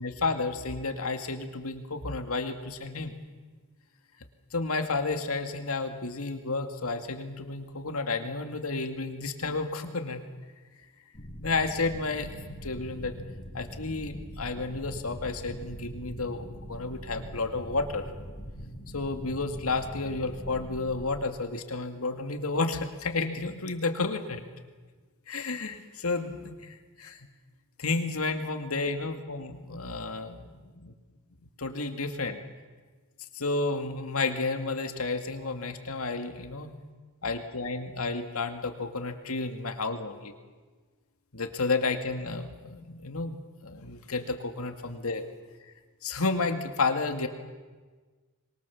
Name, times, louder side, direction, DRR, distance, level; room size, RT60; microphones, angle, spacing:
voice 1, 0.0-3.2 4.5-10.2 11.4-12.4 12.6-13.1 13.5-18.0 18.9-24.4 25.3-27.2 27.8-30.9 31.6-32.4 33.3-36.7 37.2-40.3 41.3-43.4 43.6-45.2 46.0-47.3, left 3 dB, 80° left, 6 dB, 2.2 m, -31 dB
sound 1, 11.1-21.2, equal, 30° left, 5.1 m, -42 dB
25.5 x 22.5 x 7.2 m, 1.4 s
head